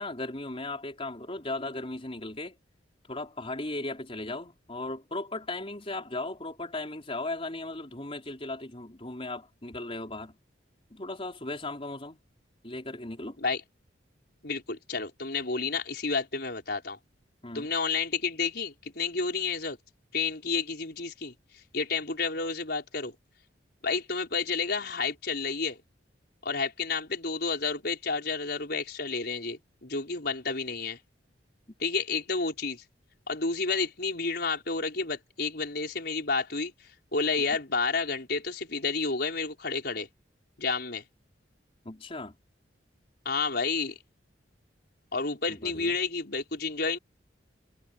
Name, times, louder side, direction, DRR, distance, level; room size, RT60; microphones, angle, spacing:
voice 1, 0.0-2.6 3.1-10.4 10.9-12.2 12.6-13.4 17.4-17.7 41.8-42.3 45.5-46.0, left 2 dB, 30° left, 4.3 m, -37 dB
voice 2, 14.4-17.0 17.5-19.8 20.1-21.3 21.7-23.1 23.8-25.8 26.4-31.0 31.8-32.8 33.3-36.7 37.1-40.1 40.6-41.0 43.2-44.0 45.1-47.0, left 4 dB, 60° left, 5.0 m, -30 dB
head